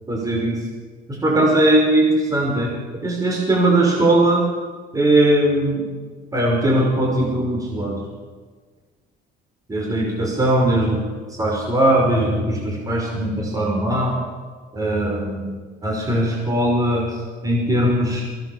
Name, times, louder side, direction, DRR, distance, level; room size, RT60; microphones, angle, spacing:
voice 1, 0.1-0.6 1.1-2.7 3.0-4.5 4.9-5.8 6.3-8.0 9.7-11.0 11.3-14.2 14.7-15.5 15.8-17.1 17.4-18.2, right 1 dB, 20° right, -1 dB, 5.7 m, -19 dB
23.5 x 18.5 x 7.3 m, 1.5 s
cardioid pair, 110°, 17 cm